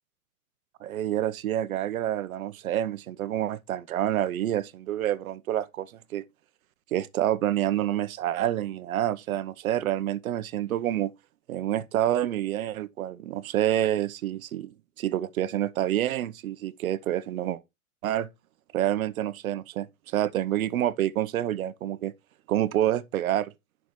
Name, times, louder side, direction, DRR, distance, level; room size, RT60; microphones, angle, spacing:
voice 1, 0.8-6.2 6.9-11.1 11.5-17.6 18.0-18.3 18.7-22.1 22.5-23.5, right 12 dB, 85° right, 1.0 m, -28 dB
11.5 x 6.0 x 3.2 m
supercardioid pair, 180°, 41 cm